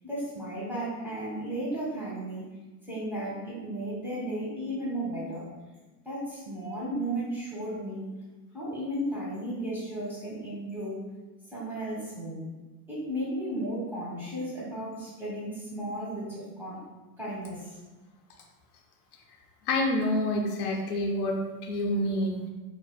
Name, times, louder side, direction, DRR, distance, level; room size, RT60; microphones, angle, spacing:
voice 1, 0.0-2.5 2.8-5.5 6.0-8.1 8.5-11.0 11.5-12.6 12.9-16.8 17.2-17.8, right 1 dB, 5° right, -7 dB, 1.2 m, -34 dB
voice 2, 19.7-22.5, left 1 dB, 75° left, 1 dB, 0.6 m, -28 dB
2.6 x 2.2 x 2.2 m, 1.2 s
hypercardioid pair, 95°, 46 cm